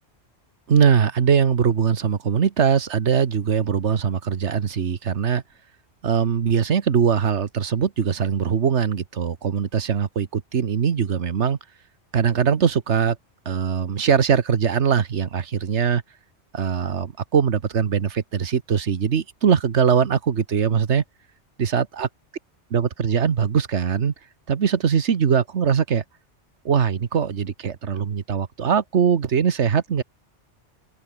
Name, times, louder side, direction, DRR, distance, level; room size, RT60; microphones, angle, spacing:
voice 1, 0.7-5.4 6.0-11.6 12.1-13.2 13.4-16.0 16.5-21.0 21.6-22.1 22.7-24.1 24.5-26.0 26.6-30.0, right 7 dB, 80° right, 1.5 m, -21 dB
open air
omnidirectional pair, 1.2 m